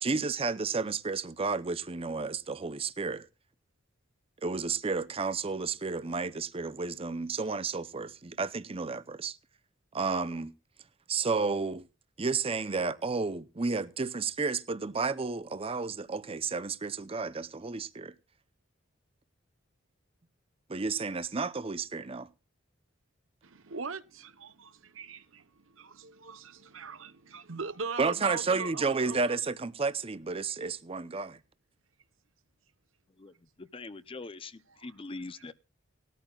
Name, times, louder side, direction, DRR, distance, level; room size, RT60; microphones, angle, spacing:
voice 1, 0.0-3.3 4.4-9.4 9.9-10.5 11.1-11.9 12.2-18.1 20.7-22.3 28.0-31.4, right 4 dB, 30° right, 0.6 m, -32 dB
voice 2, 23.4-29.4, right 4 dB, 85° right, 1.0 m, -41 dB
voice 3, 33.1-35.5, left 3 dB, 25° left, 0.6 m, -43 dB
19.5 x 13.5 x 2.4 m
head